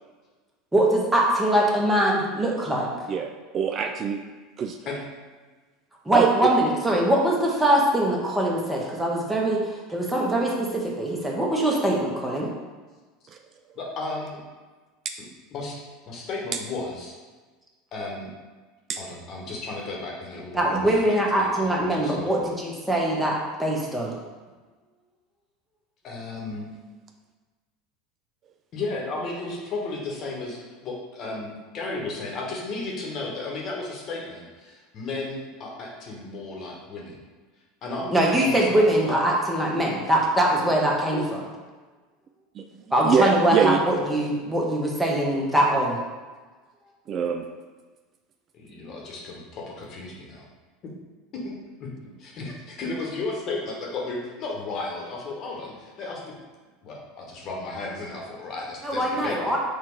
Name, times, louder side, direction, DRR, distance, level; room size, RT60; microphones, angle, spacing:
voice 1, 0.7-2.9 6.0-9.6 9.9-12.5 20.5-24.1 38.1-41.4 42.9-46.0 58.8-59.6, right 1 dB, 10° right, -2 dB, 1.0 m, -22 dB
voice 2, 3.5-4.2 4.6-4.8 6.1-6.5 18.9-19.0 42.6-42.7 43.0-43.8 47.1-47.5, right 7 dB, 40° right, 5 dB, 0.3 m, -23 dB
voice 3, 13.7-14.4 15.5-15.8 16.1-17.1 17.9-18.3 19.0-22.4 26.0-26.7 28.7-37.2 37.8-39.2 41.1-41.3 48.5-50.5 50.8-50.9 51.3-51.6 52.2-56.3 56.8-59.6, left 3 dB, 45° left, -1 dB, 1.2 m, -34 dB
4.3 x 2.5 x 4.6 m, 1.3 s
hypercardioid pair, 80°, 0 cm